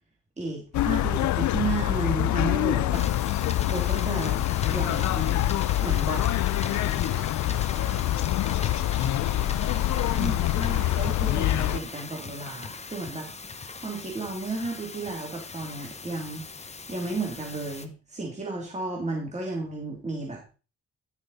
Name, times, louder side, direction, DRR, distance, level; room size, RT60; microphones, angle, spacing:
voice 1, 0.4-3.1 3.7-5.5 5.8-6.2 10.1-13.3 13.6-16.4 16.9-20.5, right 3 dB, 25° right, 0 dB, 2.8 m, -33 dB
sound 1, 0.7-11.8, left 14 dB, 70° left, 0.6 m, -25 dB
sound 2, 2.9-17.9, left 4 dB, 20° left, 1.0 m, -39 dB
voice 2, 6.5-9.3 9.6-9.7, right 3 dB, 60° right, -1 dB, 6.3 m, -48 dB
11.0 x 6.3 x 4.1 m, 0.34 s
cardioid pair, 90°, 30 cm